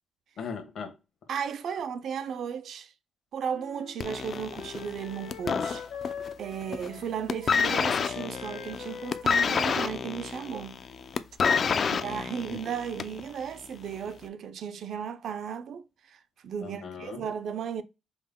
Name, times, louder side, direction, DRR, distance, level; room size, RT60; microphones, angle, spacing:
voice 1, 0.4-0.9 11.6-12.6 16.6-17.3, left 5 dB, 60° left, 1.2 m, -40 dB
voice 2, 1.3-2.9 3.3-5.9 6.4-10.8 12.0-15.8 16.4-17.8, right 7 dB, 60° right, 0.4 m, -35 dB
Wind instrument woodwind instrument, 3.5-11.3, left 8 dB, 85° left, 0.7 m, -44 dB
sound 1, 4.0-6.3 6.6-7.0 7.3-13.3 14.1-14.2, left 6 dB, 40° left, 0.3 m, -28 dB
5.4 x 2.1 x 3.6 m
cardioid pair, 145°, 0 cm